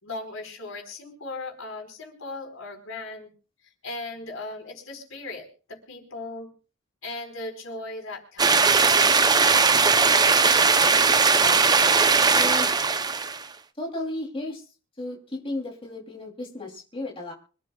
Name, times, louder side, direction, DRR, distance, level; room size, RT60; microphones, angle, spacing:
voice 1, 0.0-3.3 3.8-6.5 7.0-8.7, left 2 dB, 90° left, 3 dB, 4.5 m, -37 dB
sound 1, 8.4-13.4, right 4 dB, 20° right, 0.6 m, -19 dB
voice 2, 11.2-11.6 12.3-12.7 13.8-14.6 15.0-17.3, left 1 dB, 25° left, -1 dB, 3.0 m, -34 dB
25.5 x 13.5 x 2.3 m, 0.37 s
head